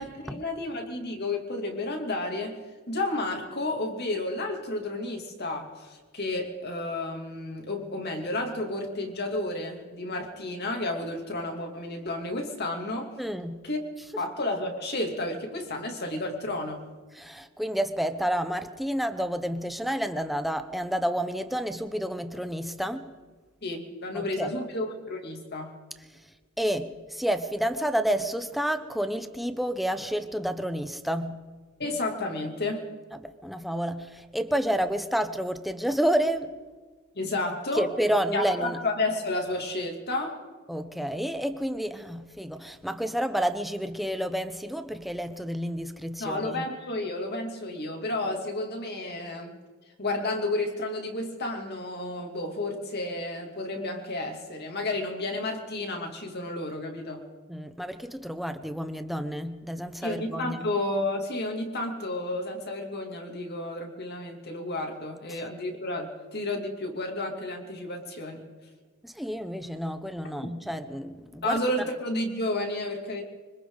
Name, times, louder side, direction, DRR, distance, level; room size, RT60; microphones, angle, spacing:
voice 1, 0.0-2.6 2.9-13.1 13.6-13.8 14.2-16.8 23.6-25.8 31.8-32.9 37.1-37.9 38.3-40.4 46.2-49.6 50.0-57.2 60.0-68.5 70.4-70.5 71.4-73.2, left 2 dB, 50° left, 3.1 m, -31 dB
voice 2, 13.2-13.6 17.1-23.2 24.1-24.6 26.1-31.4 33.1-36.5 37.7-38.8 40.7-46.6 57.5-60.7 65.3-65.4 69.0-71.6, equal, ahead, 1.0 m, -30 dB
25.0 x 25.0 x 4.1 m
head